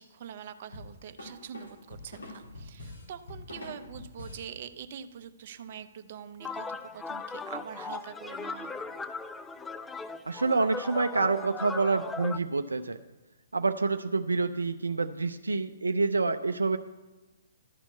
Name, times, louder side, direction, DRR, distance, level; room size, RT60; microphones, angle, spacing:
voice 1, 0.0-8.7, right 8 dB, 50° right, 9 dB, 0.7 m, -44 dB
sound 1, 0.7-4.5, left 2 dB, 80° left, 3.0 m, -44 dB
sound 2, 6.4-12.4, left 4 dB, 10° left, 0.3 m, -38 dB
voice 2, 10.3-13.0 13.5-16.8, right 3 dB, 85° right, 8 dB, 0.4 m, -27 dB
11.5 x 4.4 x 8.2 m, 1.1 s
figure-of-eight pair, 130°, 0 cm